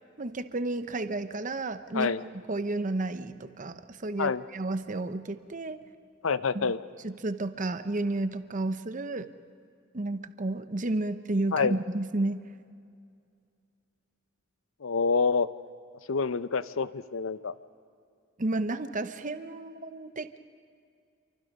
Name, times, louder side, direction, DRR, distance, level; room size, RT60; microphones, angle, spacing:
voice 1, 0.2-2.1 2.5-5.8 6.5-6.7 7.0-9.3 9.9-12.4 18.4-20.4, right 2 dB, 40° right, 11 dB, 0.8 m, -32 dB
voice 2, 6.2-6.8 11.5-11.8 14.8-15.5 16.1-17.5, left 5 dB, 75° left, 14 dB, 0.7 m, -27 dB
29.0 x 24.0 x 5.4 m, 2.3 s
head